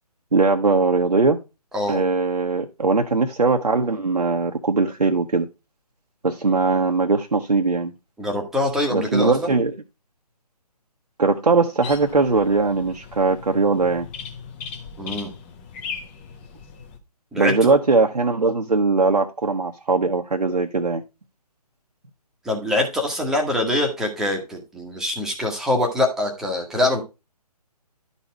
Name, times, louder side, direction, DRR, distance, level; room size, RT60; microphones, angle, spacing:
voice 1, 0.3-1.4 1.9-5.5 6.2-7.9 8.9-9.7 11.2-14.1 17.4-21.0, right 3 dB, 75° right, 1.0 m, -20 dB
voice 2, 8.2-9.6 15.0-15.3 17.3-17.7 22.4-27.0, left 1 dB, ahead, 1.2 m, -24 dB
sound 1, 11.8-17.0, left 6 dB, 15° left, 0.8 m, -38 dB
12.0 x 4.2 x 4.5 m
figure-of-eight pair, 145°, 21 cm